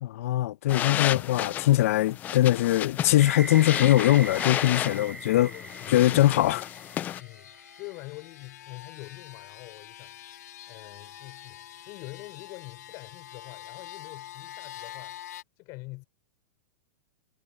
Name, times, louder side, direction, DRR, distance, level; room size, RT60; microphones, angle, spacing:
voice 1, 0.0-5.5 5.9-6.6, left 14 dB, 60° left, 0.8 m, -22 dB
sound 1, 0.7-7.2, left 11 dB, 20° left, 0.3 m, -33 dB
sound 2, 3.2-8.0, right 2 dB, 5° right, 6.4 m, -40 dB
voice 2, 4.9-6.7 7.2-10.3 10.7-15.2 15.6-16.0, left 24 dB, 35° left, 5.9 m, -45 dB
sound 3, 5.5-15.4, left 12 dB, 85° left, 3.8 m, -46 dB
supercardioid pair, 160°, 9 cm